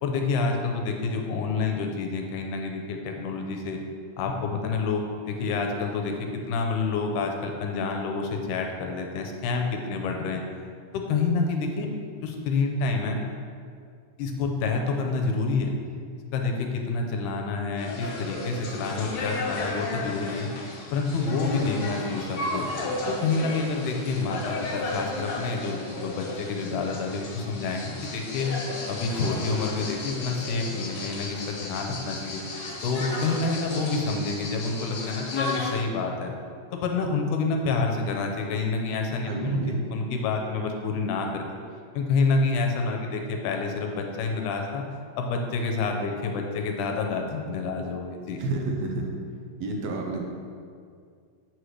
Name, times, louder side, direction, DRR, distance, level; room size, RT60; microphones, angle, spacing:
voice 1, 0.0-3.8 4.2-6.1 6.5-10.4 10.9-11.9 12.2-13.2 14.2-15.7 16.3-20.5 20.9-22.7 23.1-28.5 28.9-32.4 32.8-36.3 36.7-39.6 39.9-41.6 41.9-44.8 45.2-48.4, left 4 dB, 80° left, 2 dB, 2.1 m, -28 dB
sound 1, 17.8-35.7, left 2 dB, 60° left, 2.3 m, -34 dB
voice 2, 39.3-39.8 48.4-49.1 49.6-50.2, right 2 dB, 75° right, 1 dB, 1.8 m, -29 dB
8.0 x 6.3 x 3.2 m, 2.2 s
omnidirectional pair, 3.8 m